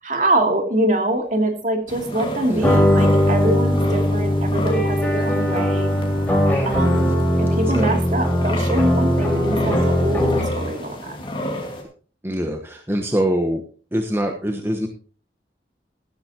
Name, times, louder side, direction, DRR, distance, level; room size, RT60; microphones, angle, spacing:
voice 1, 0.0-5.9 6.7-7.1 7.4-11.2, right 1 dB, 45° right, 4 dB, 2.7 m, -24 dB
sound 1, 1.9-11.8, left 1 dB, 30° left, 2.7 m, -31 dB
voice 2, 2.5-2.8 7.7-7.9 12.2-13.6 13.9-14.9, equal, 15° right, 4 dB, 1.0 m, -24 dB
sound 2, 2.6-10.7, equal, 10° left, 4.2 m, -19 dB
15.0 x 12.5 x 2.9 m, 0.39 s
head